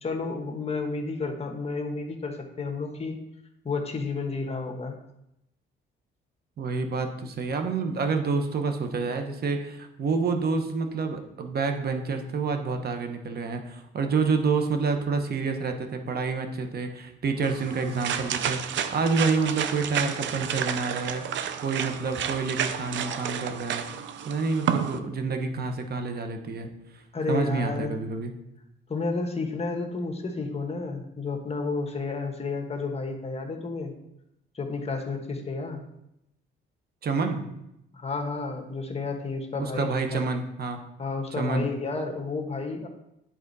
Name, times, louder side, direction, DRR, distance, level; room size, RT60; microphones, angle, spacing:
voice 1, 0.0-3.2 3.6-4.9 27.1-28.0 28.9-33.9 34.5-35.8 37.9-40.2 41.0-42.9, left 3 dB, 30° left, 3 dB, 1.3 m, -31 dB
voice 2, 6.6-23.8 24.2-27.0 27.3-28.3 37.0-37.4 39.6-40.8 41.4-41.7, right 4 dB, 50° right, 6 dB, 1.1 m, -28 dB
sound 1, 17.4-25.0, right 9 dB, 70° right, 0.6 m, -31 dB
10.0 x 4.2 x 4.1 m, 0.84 s
cardioid pair, 90°, 20 cm